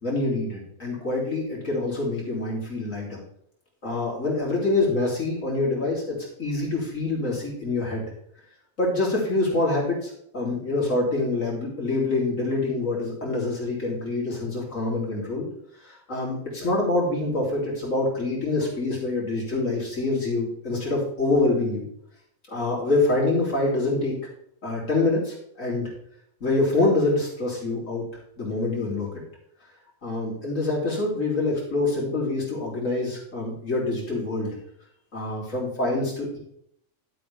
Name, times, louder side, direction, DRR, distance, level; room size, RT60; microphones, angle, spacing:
voice 1, 0.0-3.2 3.8-8.0 8.8-15.4 15.8-21.8 22.5-24.1 24.6-25.9 26.4-28.1 28.4-29.1 30.0-34.6 35.1-36.4, left 2 dB, 80° left, -4 dB, 4.1 m, -26 dB
12.5 x 7.8 x 3.5 m, 0.70 s
omnidirectional pair, 1.3 m